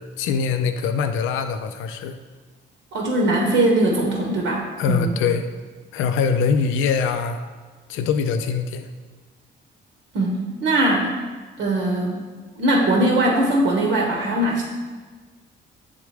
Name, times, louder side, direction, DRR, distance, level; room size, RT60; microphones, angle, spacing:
voice 1, 0.0-2.2 4.8-5.5 5.9-7.4 7.9-8.9, left 6 dB, 85° left, 8 dB, 0.4 m, -23 dB
voice 2, 2.9-5.1 10.1-11.1 11.6-12.2 12.6-14.6, right 1 dB, 80° right, -1 dB, 0.9 m, -20 dB
8.2 x 3.6 x 3.2 m, 1.4 s
cardioid pair, 90°, 20 cm